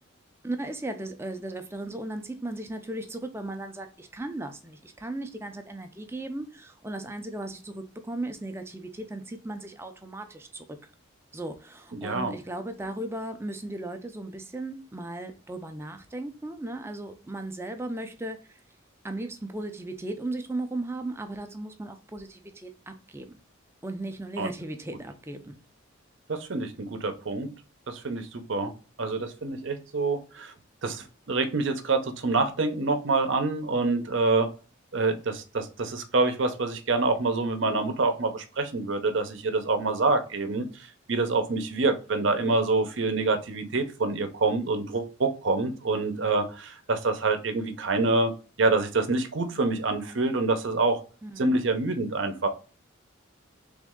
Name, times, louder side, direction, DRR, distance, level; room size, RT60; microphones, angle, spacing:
voice 1, 0.4-10.6 11.3-18.6 19.0-23.4 23.8-25.6 51.2-51.6, right 2 dB, 10° right, 0.4 m, -36 dB
voice 2, 11.9-12.3 24.4-24.5 26.3-27.5 27.9-28.7 29.0-30.5 30.8-34.5 34.9-48.3 48.6-51.0 51.4-52.5, right 3 dB, 65° right, 0.7 m, -26 dB
3.5 x 3.1 x 3.6 m
head